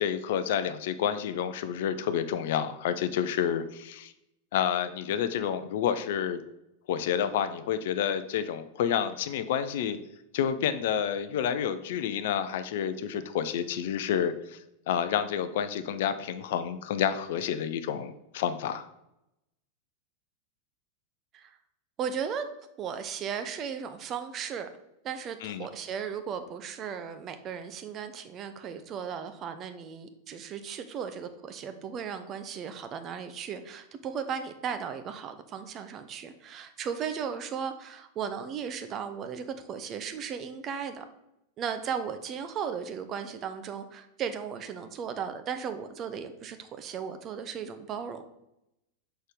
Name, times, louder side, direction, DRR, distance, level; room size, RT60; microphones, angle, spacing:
voice 1, 0.0-4.1 4.5-6.4 6.9-10.0 10.3-14.6 14.9-18.9 25.4-25.7, left 9 dB, 55° left, 11 dB, 0.5 m, -29 dB
voice 2, 22.0-22.4 22.8-24.7 25.0-41.0 41.6-48.2, right 7 dB, 30° right, 9 dB, 0.8 m, -36 dB
6.6 x 4.5 x 5.2 m, 0.84 s
figure-of-eight pair, 90°, 0 cm